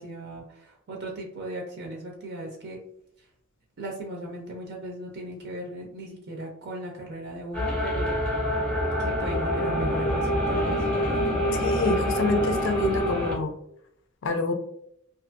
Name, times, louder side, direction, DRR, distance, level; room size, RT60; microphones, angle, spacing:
voice 1, 0.0-2.8 3.8-8.1 9.0-10.7, right 1 dB, 55° right, 0 dB, 0.5 m, -37 dB
sound 1, 7.5-13.3, equal, 5° left, 0.6 m, -26 dB
voice 2, 11.6-13.5 14.2-14.5, left 3 dB, 60° left, 5 dB, 0.5 m, -26 dB
2.5 x 2.4 x 2.4 m, 0.75 s
head